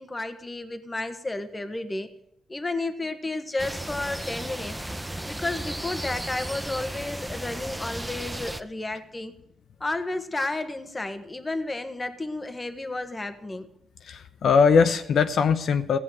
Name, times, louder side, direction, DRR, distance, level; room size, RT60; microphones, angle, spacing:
voice 1, 0.0-2.1 2.5-4.8 5.3-9.3 9.8-13.7, left 2 dB, 20° left, 10 dB, 1.5 m, -32 dB
sound 1, 3.6-8.6, right 1 dB, 5° right, 0.8 m, -34 dB
voice 2, 14.0-16.0, left 6 dB, 70° left, 9 dB, 0.9 m, -21 dB
16.0 x 8.2 x 9.1 m, 0.74 s
cardioid pair, 105°, 0 cm